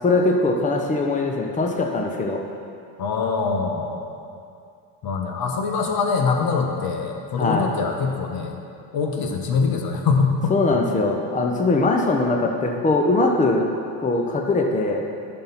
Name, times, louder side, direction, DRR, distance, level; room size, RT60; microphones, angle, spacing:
voice 1, 0.0-2.4 7.4-7.7 10.5-13.6 14.0-15.0, left 2 dB, 15° left, 2 dB, 0.9 m, -21 dB
voice 2, 3.0-4.1 5.0-8.6 8.9-10.8, left 5 dB, 55° left, 2 dB, 1.2 m, -24 dB
10.5 x 5.8 x 4.1 m, 2.5 s
hypercardioid pair, 70°, 44 cm